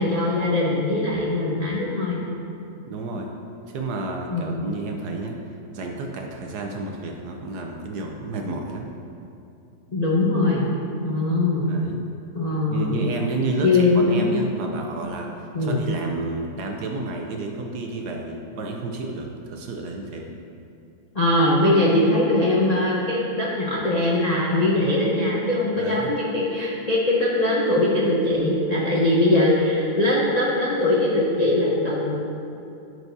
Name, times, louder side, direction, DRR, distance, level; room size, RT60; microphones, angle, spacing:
voice 1, 0.0-2.3 4.3-4.5 9.9-10.7 11.0-11.7 12.3-13.0 13.6-14.3 15.5-15.8 21.1-32.1, left 2 dB, 55° left, -5 dB, 0.4 m, -21 dB
voice 2, 2.9-3.3 3.7-5.4 5.7-8.9 11.7-12.0 12.7-20.4 25.8-26.1, right 2 dB, 70° right, 2 dB, 1.1 m, -31 dB
13.5 x 4.7 x 2.7 m, 2.8 s
omnidirectional pair, 2.0 m